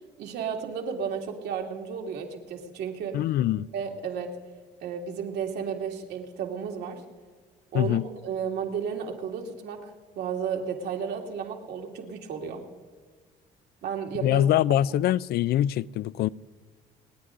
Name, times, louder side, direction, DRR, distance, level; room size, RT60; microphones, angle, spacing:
voice 1, 0.2-3.2 3.7-4.3 4.8-7.0 7.7-12.6 13.8-14.5, right 7 dB, 75° right, 2.4 m, -33 dB
voice 2, 3.1-3.7 7.7-8.0 14.2-16.3, left 12 dB, 70° left, 0.4 m, -23 dB
28.5 x 9.9 x 3.8 m
cardioid pair, 110°, 17 cm